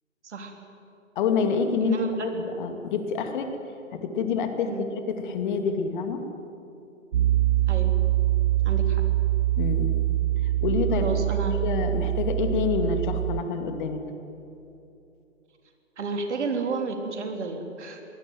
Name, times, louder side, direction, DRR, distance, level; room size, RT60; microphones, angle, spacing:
voice 1, 1.2-3.5 3.9-4.7 5.1-6.2 9.6-9.9 10.4-11.1 11.5-14.0, left 6 dB, 40° left, 6 dB, 2.5 m, -27 dB
voice 2, 1.8-2.3 2.6-2.7 4.7-4.9 7.7-8.0 8.6-9.0 10.9-11.6 16.0-18.0, right 4 dB, 60° right, 4 dB, 3.7 m, -31 dB
Piano, 7.1-13.4, right 14 dB, 40° right, 0.8 m, -24 dB
23.0 x 19.0 x 9.2 m, 2.8 s
figure-of-eight pair, 130°, 39 cm